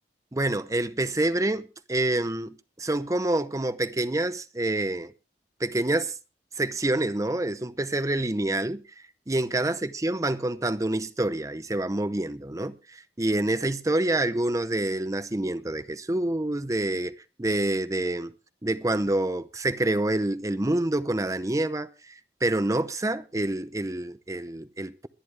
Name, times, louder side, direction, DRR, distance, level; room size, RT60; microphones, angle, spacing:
voice 1, 0.3-5.1 5.6-6.2 6.5-8.8 9.3-18.3 18.6-25.1, right 1 dB, 20° right, 0.7 m, -27 dB
22.5 x 10.0 x 3.3 m
head